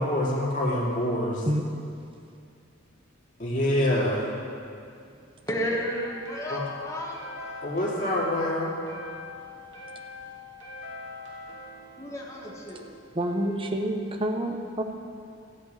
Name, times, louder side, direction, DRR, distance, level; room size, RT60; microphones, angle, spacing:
voice 1, 0.0-1.5 3.4-4.3 6.5-6.6 7.6-8.7, left 1 dB, 40° left, -5 dB, 2.6 m, -26 dB
voice 2, 5.5-7.2 12.0-12.8, equal, 15° left, -2 dB, 1.5 m, -32 dB
sound 1, 5.9-13.7, left 3 dB, 75° right, 2.7 m, -43 dB
voice 3, 13.1-14.8, right 1 dB, 25° right, 4 dB, 0.8 m, -28 dB
15.0 x 5.2 x 8.4 m, 2.4 s
head